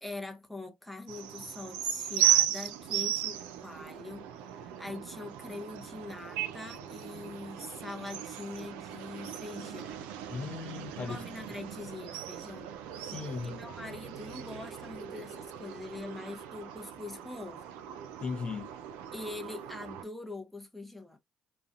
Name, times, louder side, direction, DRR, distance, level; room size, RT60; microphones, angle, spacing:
voice 1, 0.0-10.0 11.0-12.7 13.4-17.7 19.1-21.2, left 2 dB, 5° left, 0.7 m, -43 dB
sound 1, 1.1-20.0, right 11 dB, 80° right, 0.3 m, -36 dB
voice 2, 10.3-11.2 13.0-13.6 18.2-18.7, left 5 dB, 40° left, 0.5 m, -37 dB
2.4 x 2.1 x 2.4 m
hypercardioid pair, 50°, 3 cm